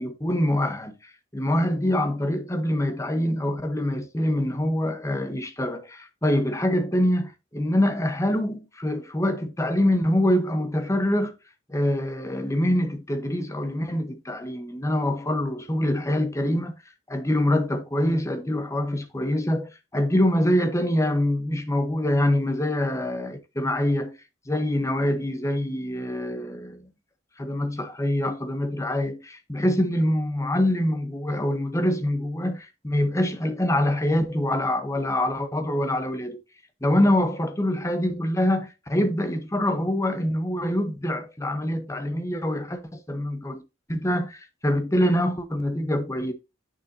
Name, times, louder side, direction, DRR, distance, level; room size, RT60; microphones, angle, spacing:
voice 1, 0.0-11.3 11.7-16.7 17.1-24.2 24.5-26.8 27.4-36.4 36.8-43.6 43.9-46.3, left 1 dB, 15° left, 1.0 m, -25 dB
8.6 x 6.9 x 2.7 m
head